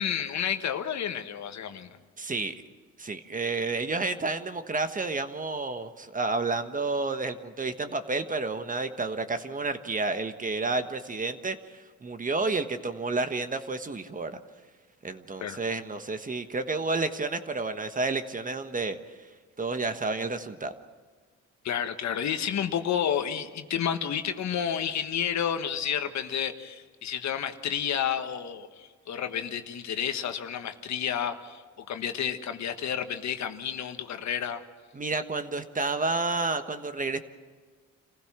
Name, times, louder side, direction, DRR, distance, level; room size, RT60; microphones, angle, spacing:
voice 1, 0.0-2.0 15.4-15.6 21.6-31.6 31.9-34.6, left 8 dB, 65° left, 8 dB, 1.4 m, -30 dB
voice 2, 2.2-2.5 3.0-14.4 15.0-19.0 19.6-20.7 34.9-37.2, right 3 dB, 25° right, 9 dB, 1.3 m, -30 dB
27.0 x 16.0 x 6.0 m, 1.5 s
cardioid pair, 90°, 30 cm